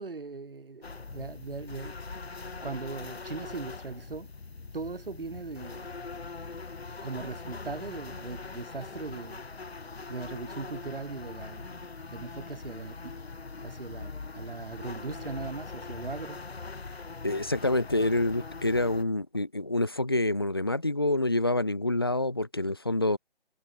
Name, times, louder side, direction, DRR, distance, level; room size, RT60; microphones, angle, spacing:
voice 1, 0.0-2.0 2.6-4.3 4.7-5.9 7.0-9.4 10.1-13.1 13.6-16.4, right 4 dB, 65° right, 7.4 m, -39 dB
sound 1, 0.8-19.0, left 4 dB, 90° left, 3.7 m, -42 dB
voice 2, 17.2-23.2, left 2 dB, 25° left, 0.7 m, -27 dB
hypercardioid pair, 180°, 31 cm